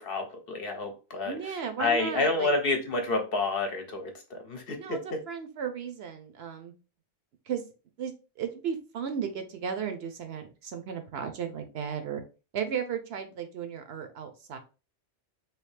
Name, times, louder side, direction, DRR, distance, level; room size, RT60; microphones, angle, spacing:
voice 1, 0.0-1.4 1.8-5.2, left 3 dB, 55° left, 0.8 m, -29 dB
voice 2, 1.2-2.5 4.7-6.7 7.5-7.6 8.0-8.1 8.4-12.2 12.5-14.6, right 7 dB, 65° right, 0.8 m, -35 dB
3.2 x 2.6 x 3.1 m
omnidirectional pair, 1.2 m